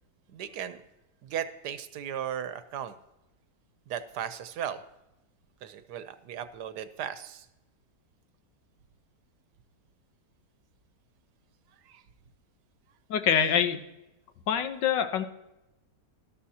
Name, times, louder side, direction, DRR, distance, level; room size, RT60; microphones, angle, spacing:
voice 1, 0.3-0.8 1.2-2.9 3.9-4.8 5.6-7.5 11.9-12.0, right 9 dB, 75° right, 11 dB, 1.3 m, -36 dB
voice 2, 13.1-13.8 14.5-15.3, left 8 dB, 90° left, 9 dB, 1.6 m, -25 dB
12.5 x 12.5 x 2.8 m, 0.93 s
omnidirectional pair, 1.9 m